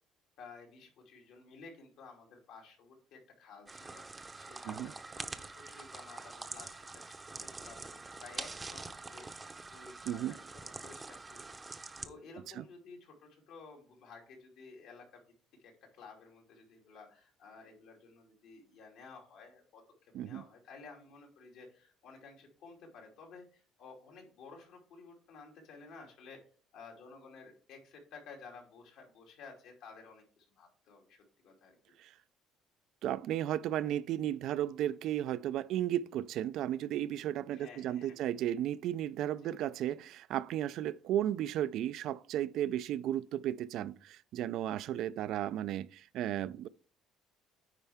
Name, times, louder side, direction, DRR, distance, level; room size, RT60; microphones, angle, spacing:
voice 1, 0.4-15.2 15.6-26.4 26.7-31.7 37.5-38.2 39.4-39.5, left 4 dB, 75° left, 2.6 m, -54 dB
sound 1, 3.7-12.1, right 3 dB, 20° right, 0.7 m, -45 dB
voice 2, 33.0-46.7, right 12 dB, 65° right, 0.3 m, -34 dB
9.6 x 4.4 x 3.5 m
cardioid pair, 115°, 0 cm